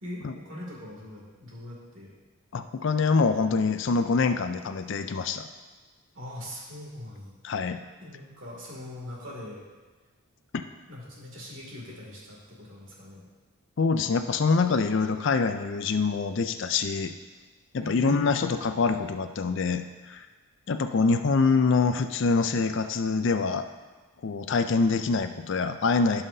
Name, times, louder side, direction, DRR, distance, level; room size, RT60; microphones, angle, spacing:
voice 1, 0.0-2.1 6.1-7.4 8.0-9.7 10.9-13.3 17.8-18.3, left 1 dB, 55° right, -3 dB, 2.4 m, -41 dB
voice 2, 2.5-5.5 7.4-7.8 10.5-10.6 13.8-17.1 17.7-20.3 20.7-23.7 24.2-26.2, left 4 dB, 55° left, 8 dB, 0.4 m, -25 dB
16.5 x 5.7 x 2.7 m, 1.3 s
head